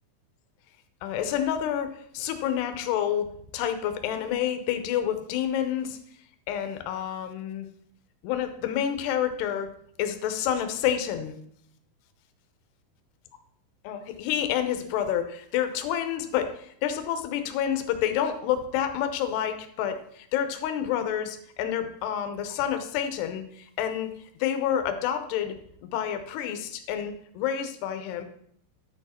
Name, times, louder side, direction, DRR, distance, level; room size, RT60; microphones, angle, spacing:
voice 1, 1.0-3.3 3.5-6.0 6.5-7.7 8.2-9.7 10.0-11.4 13.8-24.1 24.4-25.6 25.8-28.2, left 9 dB, 75° left, 8 dB, 2.5 m, -28 dB
11.0 x 7.1 x 4.3 m, 0.67 s
omnidirectional pair, 5.6 m